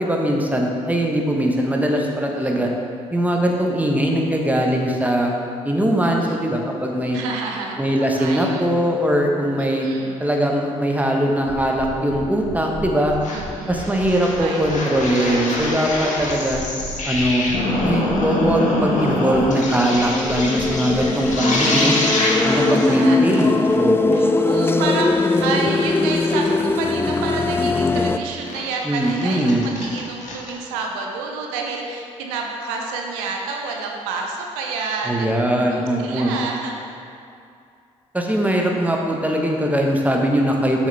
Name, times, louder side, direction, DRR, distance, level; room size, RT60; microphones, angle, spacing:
voice 1, 0.0-2.7 3.1-5.3 5.6-7.2 7.8-9.9 10.2-13.1 13.7-16.6 17.0-17.5 17.8-22.0 22.4-24.2 28.8-29.6 35.1-36.4 38.1-40.9, equal, 10° right, 0 dB, 1.2 m, -21 dB
voice 2, 2.3-2.7 6.2-6.4 7.1-8.6 9.6-10.2 13.3-14.8 15.1-15.6 16.6-16.7 18.3-18.5 20.9-21.5 22.5-23.7 24.1-35.3 35.6-36.7, right 4 dB, 75° right, 1 dB, 0.8 m, -29 dB
sound 1, 11.5-21.3, right 2 dB, 70° left, 1.9 m, -37 dB
sound 2, 13.2-13.4 13.8-22.9 23.3-23.4 23.7-23.8 24.1-24.2 24.5-24.6 25.0-25.4 25.9-26.6 27.1-27.2 27.9-28.0 28.3-28.6 29.0-30.5, left 1 dB, 50° left, 1.6 m, -25 dB
sound 3, 18.8-28.2, left 3 dB, 15° left, 0.4 m, -21 dB
7.9 x 6.4 x 3.4 m, 2.5 s
hypercardioid pair, 45°, 16 cm